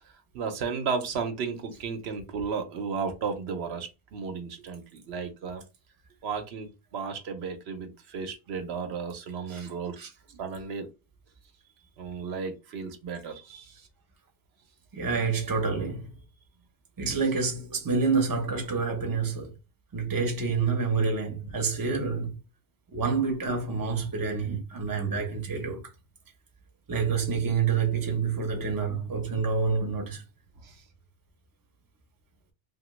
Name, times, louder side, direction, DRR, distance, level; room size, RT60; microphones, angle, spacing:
voice 1, 0.3-5.6 6.2-10.0 10.4-10.9 12.0-13.9 30.6-30.8, right 5 dB, 80° right, 0.9 m, -34 dB
voice 2, 14.9-16.1 17.0-19.5 19.9-22.4 22.9-25.8 26.9-30.2, right 5 dB, 25° right, 0.6 m, -28 dB
2.9 x 2.2 x 3.0 m
omnidirectional pair, 1.1 m